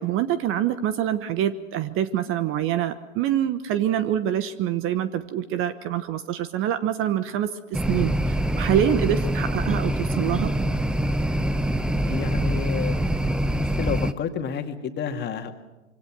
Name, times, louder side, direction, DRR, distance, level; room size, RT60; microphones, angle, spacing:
voice 1, 0.0-10.5, right 10 dB, 35° right, 13 dB, 1.1 m, -25 dB
sound 1, 7.7-14.1, right 1 dB, ahead, 0.7 m, -24 dB
voice 2, 12.0-13.0 13.5-15.5, left 7 dB, 25° left, 5 dB, 2.2 m, -30 dB
26.0 x 24.5 x 6.1 m, 1.1 s
hypercardioid pair, 100°, 39 cm